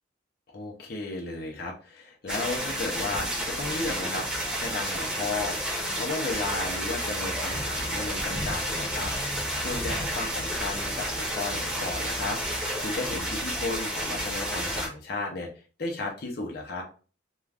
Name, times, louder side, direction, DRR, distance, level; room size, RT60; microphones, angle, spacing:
voice 1, 0.5-4.3 4.6-9.1 9.6-12.4 12.8-15.5 15.8-16.8, left 3 dB, 55° left, 0 dB, 0.6 m, -34 dB
sound 1, 2.3-14.9, equal, 5° right, 0.8 m, -31 dB
2.4 x 2.3 x 3.3 m, 0.37 s
head